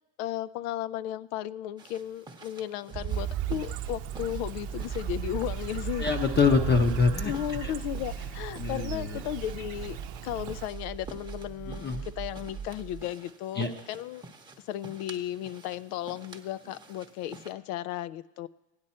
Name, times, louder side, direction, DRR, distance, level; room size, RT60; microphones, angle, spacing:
voice 1, 0.2-6.1 7.2-14.2 14.6-18.5, left 12 dB, 75° left, 17 dB, 0.5 m, -35 dB
sound 1, 1.8-17.5, right 3 dB, 10° right, 0.8 m, -51 dB
sound 2, 2.9-13.0, right 8 dB, 35° right, 0.9 m, -37 dB
Chirp tweet, 3.1-10.7, right 11 dB, 70° right, 0.7 m, -43 dB
voice 2, 6.0-7.3 7.6-7.7 8.6-9.2 11.8-12.1 13.6-13.7, left 4 dB, 20° left, 5 dB, 0.7 m, -25 dB
15.5 x 9.7 x 4.3 m, 1.0 s
supercardioid pair, 105°, 46 cm